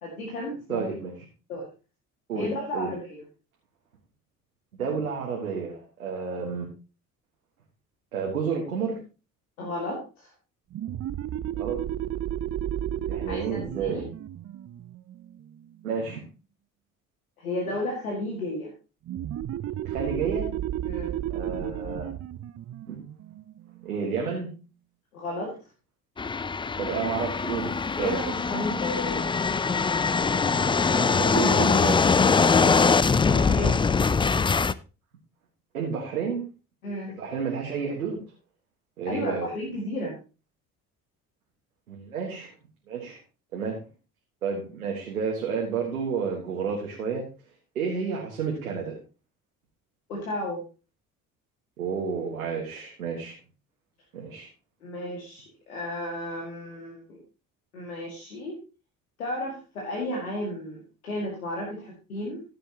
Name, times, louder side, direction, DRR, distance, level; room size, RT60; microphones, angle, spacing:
voice 1, 0.0-0.9 1.5-1.7 2.3-3.2 9.6-10.3 13.3-14.0 17.4-18.7 20.9-21.1 25.1-25.5 28.0-29.3 33.3-33.8 36.8-37.1 39.1-40.2 50.1-50.6 54.8-57.2 57.7-58.6 59.2-62.4, left 1 dB, 90° left, -2 dB, 2.3 m, -33 dB
voice 2, 0.7-1.1 2.3-2.9 4.7-6.7 8.1-9.0 11.5-11.8 13.1-14.1 15.8-16.2 19.9-20.6 21.3-22.1 22.9-23.0 23.8-24.5 26.8-28.3 30.9-32.1 35.7-36.4 37.1-38.2 39.0-39.5 41.9-42.5 42.9-43.2 43.5-43.8 44.4-47.3 47.8-49.0 51.8-53.4 54.1-54.5, right 6 dB, 90° right, -1 dB, 1.7 m, -30 dB
sound 1, 10.7-16.0 19.1-24.3, right 11 dB, 40° right, 0.6 m, -33 dB
sound 2, 26.2-34.7, left 5 dB, 15° left, 0.4 m, -23 dB
14.5 x 7.7 x 3.0 m, 0.32 s
hypercardioid pair, 55°, 42 cm